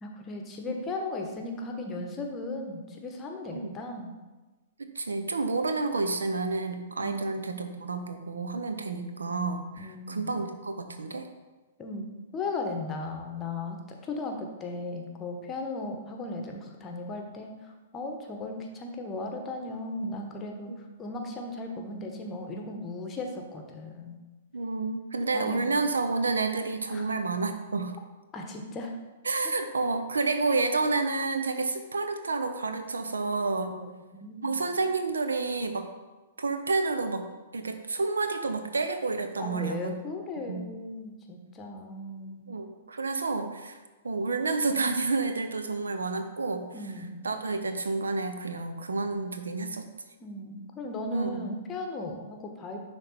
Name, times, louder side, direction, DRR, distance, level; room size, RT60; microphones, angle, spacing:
voice 1, 0.0-4.1 7.0-7.5 9.8-10.4 11.8-12.1 12.3-20.7 21.0-24.2 25.3-25.7 26.9-27.0 28.3-28.9 29.4-29.5 33.7-33.9 34.1-34.6 39.4-42.5 46.7-47.2 50.2-52.8, left 2 dB, 20° left, 3 dB, 1.0 m, -37 dB
voice 2, 4.8-11.3 20.7-20.8 24.5-28.0 29.2-33.8 34.4-35.9 36.4-40.0 40.5-40.7 42.5-43.8 44.0-46.7 47.2-49.9 51.1-51.4, right 3 dB, 70° right, 7 dB, 0.7 m, -30 dB
10.5 x 3.5 x 4.2 m, 1.2 s
figure-of-eight pair, 110°, 0 cm